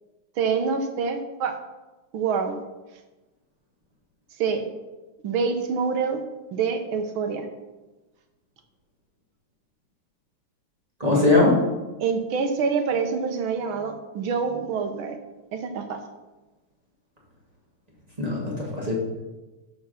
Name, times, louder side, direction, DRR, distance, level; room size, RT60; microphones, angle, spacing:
voice 1, 0.4-1.6 2.1-2.6 4.4-4.7 5.2-6.2 6.5-7.5 12.0-15.2 15.5-16.0, right 5 dB, 85° right, 6 dB, 1.9 m, -26 dB
voice 2, 11.0-11.6 18.2-18.9, left 2 dB, 20° right, -4 dB, 2.6 m, -20 dB
12.0 x 5.1 x 5.8 m, 1.1 s
omnidirectional pair, 2.2 m